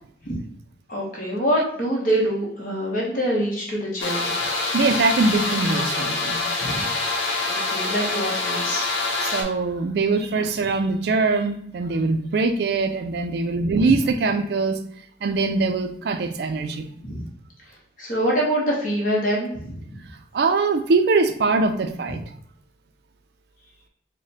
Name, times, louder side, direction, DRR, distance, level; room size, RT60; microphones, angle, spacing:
voice 1, 0.9-4.3 6.6-6.8 7.5-8.9 13.7-13.9 17.0-17.2 17.7-19.8, equal, 45° left, -4 dB, 0.9 m, -25 dB
sound 1, 4.0-9.4, left 3 dB, 90° left, 0.8 m, -25 dB
voice 2, 4.7-6.4 9.2-14.8 15.2-16.8 20.3-22.2, right 3 dB, 55° right, 7 dB, 0.3 m, -22 dB
4.8 x 2.1 x 2.8 m, 0.67 s
head